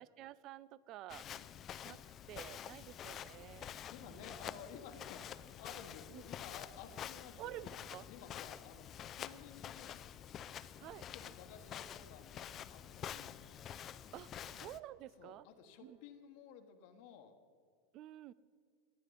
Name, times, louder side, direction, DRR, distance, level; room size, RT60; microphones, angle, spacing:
voice 1, 0.0-1.3 1.8-2.0 2.3-4.4 6.1-6.2 7.4-8.1 10.8-11.1 14.1-14.3 14.6-15.5 15.8-16.0 17.9-18.3, right 13 dB, 45° right, 19 dB, 0.5 m, -50 dB
Walk footsteps, 1.1-14.8, left 10 dB, 35° left, 0.5 m, -48 dB
Trumpet, 1.6-11.8 12.3-16.1, equal, 65° right, 4.2 m, -80 dB
voice 2, 3.9-7.7 8.1-8.9 9.1-10.0 11.1-13.4 14.4-14.5 15.2-17.4, left 7 dB, 55° left, 6 dB, 1.2 m, -54 dB
19.0 x 11.5 x 4.0 m, 2.3 s
hypercardioid pair, 85°, 0 cm